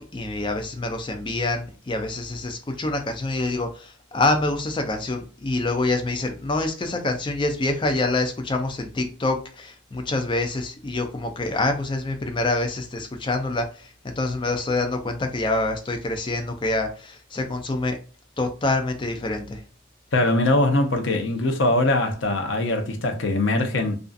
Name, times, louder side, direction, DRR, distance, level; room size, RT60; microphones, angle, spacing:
voice 1, 0.0-18.0 18.4-19.6, left 2 dB, 25° left, 0.4 m, -26 dB
voice 2, 20.1-24.0, left 2 dB, 70° left, 0.6 m, -22 dB
2.5 x 2.4 x 2.4 m
head